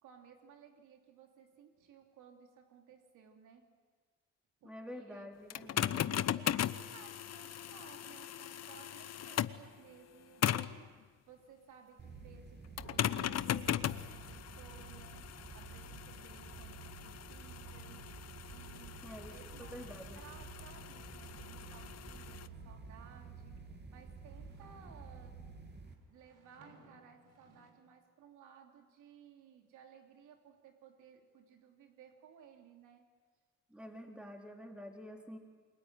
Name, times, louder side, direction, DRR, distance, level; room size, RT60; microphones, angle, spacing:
voice 1, 0.0-3.7 4.6-5.5 5.7-18.1 18.5-25.4 25.7-33.1, right 7 dB, 85° right, 4 dB, 3.0 m, -59 dB
voice 2, 4.6-6.7 19.0-19.3 19.7-20.2 33.7-35.4, equal, 5° right, 2 dB, 3.9 m, -48 dB
sound 1, 5.5-9.7 10.4-10.8 12.8-22.5, left 11 dB, 60° left, 0.9 m, -38 dB
sound 2, 12.0-25.9, right 4 dB, 35° right, 2.7 m, -51 dB
sound 3, 18.9-23.3 23.8-27.7, right 1 dB, 60° right, 5.9 m, -66 dB
29.0 x 22.0 x 9.5 m, 1.5 s
cardioid pair, 90°, 30 cm